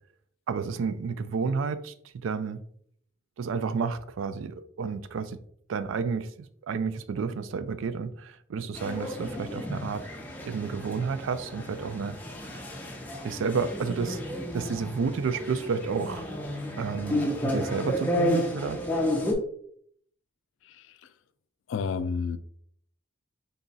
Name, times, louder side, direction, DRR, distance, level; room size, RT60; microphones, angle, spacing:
voice 1, 0.5-1.9 2.2-2.6 3.4-5.4 5.7-10.1 10.5-12.2 13.2-14.2 14.5-16.3 16.8-18.8, right 5 dB, 85° right, 0.3 m, -31 dB
sound 1, 8.7-19.3, left 1 dB, 10° left, 0.5 m, -32 dB
voice 2, 21.7-22.4, left 5 dB, 75° left, 0.3 m, -30 dB
4.0 x 2.3 x 3.9 m
head